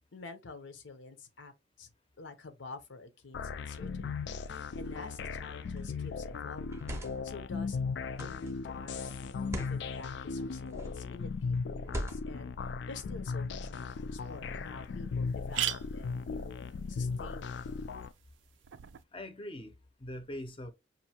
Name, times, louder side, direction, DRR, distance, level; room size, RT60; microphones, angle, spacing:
voice 1, 0.1-1.5 1.8-1.9 2.2-7.0 7.2-7.8 8.1-17.6, left 3 dB, 85° left, 0.8 m, -48 dB
sound 1, 3.3-18.1, left 4 dB, 65° left, 0.3 m, -37 dB
sound 2, 5.5-5.8 6.6-7.4 8.2-8.5 9.4-9.8 10.7-11.1 11.8-12.5, equal, 15° right, 0.6 m, -40 dB
sound 3, 14.0-14.1 14.5-14.6 14.8-14.9 15.3-19.0, right 12 dB, 85° right, 0.4 m, -40 dB
voice 2, 19.1-20.7, left 1 dB, 30° left, 0.6 m, -42 dB
5.4 x 2.6 x 2.8 m
head